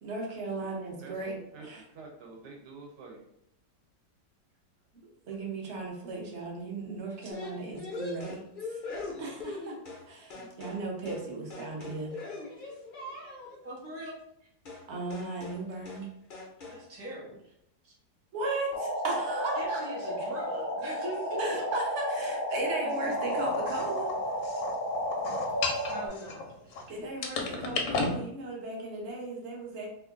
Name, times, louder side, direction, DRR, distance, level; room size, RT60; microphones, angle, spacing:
voice 1, 0.0-1.4 1.6-1.8 5.3-8.4 8.7-8.8 9.2-9.8 10.1-12.1 14.9-16.1 18.3-19.8 21.4-24.1 26.9-29.9, right 2 dB, 50° right, -1 dB, 1.0 m, -36 dB
voice 2, 0.6-3.3 10.3-10.5, right 3 dB, 75° right, 0 dB, 1.4 m, -49 dB
sound 1, 7.3-10.1 10.3-10.8 11.1-11.3 11.5-13.6 14.7-14.9 15.1-15.6 15.9-16.1 16.3-16.8, left 3 dB, 85° left, 0.4 m, -41 dB
voice 3, 13.6-14.2 16.7-17.5 17.8-17.9 19.6-21.4 21.7-21.8 22.8-23.0 25.5-26.9, equal, 15° right, -5 dB, 0.6 m, -41 dB
sound 2, 18.7-26.1, equal, 40° left, 0.7 m, -33 dB
sound 3, 23.1-26.8 27.2-28.2, left 3 dB, 70° left, 0.8 m, -34 dB
3.0 x 2.5 x 3.6 m, 0.74 s
omnidirectional pair, 1.9 m